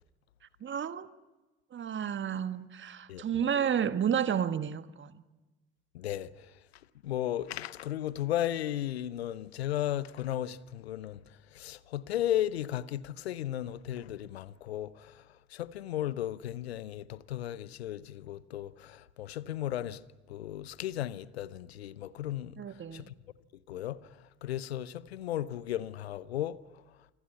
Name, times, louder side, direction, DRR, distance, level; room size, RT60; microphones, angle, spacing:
voice 1, 0.6-1.1 1.7-5.2 22.6-23.1, right 8 dB, 35° right, 1.6 m, -31 dB
voice 2, 5.9-6.3 7.0-11.2 11.5-15.1 15.5-20.0 20.3-22.6 22.9-23.1 23.7-24.0 24.4-26.6, left 12 dB, 75° left, 0.9 m, -35 dB
27.5 x 25.5 x 5.8 m
figure-of-eight pair, 50°, 32 cm